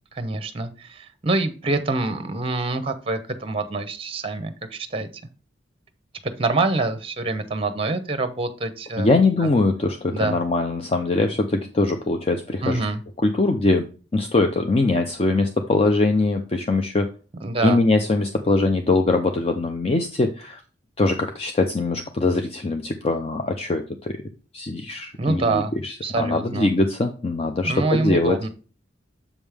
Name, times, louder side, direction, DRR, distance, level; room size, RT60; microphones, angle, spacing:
voice 1, 0.1-5.1 6.2-9.1 9.4-9.5 10.1-10.4 12.6-13.0 17.4-17.8 25.2-25.7 26.0-26.7 27.6-28.5, right 3 dB, 30° right, 11 dB, 0.8 m, -25 dB
voice 2, 9.0-12.8 13.2-13.8 14.1-17.1 17.6-20.6 21.0-24.2 24.5-28.4, left 2 dB, 30° left, 5 dB, 0.5 m, -22 dB
7.2 x 5.3 x 3.4 m, 0.37 s
head